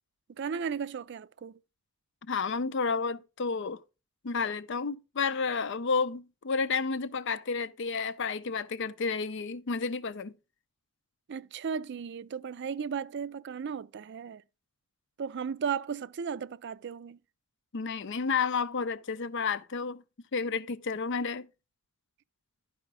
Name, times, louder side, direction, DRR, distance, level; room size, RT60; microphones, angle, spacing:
voice 1, 0.4-1.6 11.3-14.4 15.2-17.2, right 6 dB, 55° right, 0.4 m, -35 dB
voice 2, 2.3-3.8 4.2-10.3 17.7-20.0 20.3-21.5, left 5 dB, 60° left, 0.6 m, -31 dB
11.5 x 4.9 x 4.7 m
head